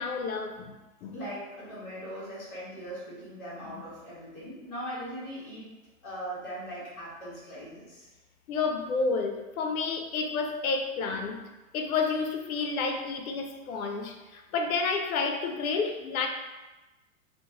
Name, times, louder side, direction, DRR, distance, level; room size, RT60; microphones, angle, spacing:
voice 1, 0.0-1.2 3.7-3.8 8.5-11.4 11.7-16.3, left 4 dB, 90° left, 4 dB, 0.5 m, -30 dB
voice 2, 1.1-5.7 6.0-8.1, equal, 5° left, -19 dB, 0.5 m, -40 dB
2.4 x 2.2 x 2.9 m, 1.1 s
hypercardioid pair, 180°, 41 cm